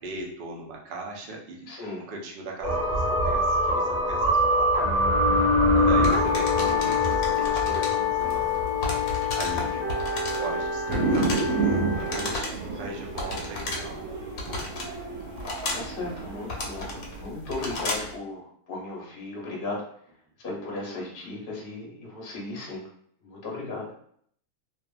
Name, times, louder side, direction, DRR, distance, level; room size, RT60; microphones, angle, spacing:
voice 1, 0.0-4.8 5.3-5.5 5.8-8.6 9.3-9.9 10.4-11.4 12.0-14.1 14.4-14.6, right 2 dB, 60° right, 0 dB, 0.5 m, -38 dB
voice 2, 1.7-2.1 15.7-19.8 20.4-22.8 23.2-23.9, left 2 dB, 45° left, -3 dB, 0.8 m, -36 dB
sound 1, 2.6-12.3, left 2 dB, ahead, 0.8 m, -24 dB
sound 2, 6.0-18.2, left 2 dB, 75° left, 1.1 m, -35 dB
sound 3, 10.9-17.2, right 3 dB, 90° right, 1.2 m, -31 dB
2.7 x 2.4 x 2.3 m, 0.63 s
omnidirectional pair, 1.5 m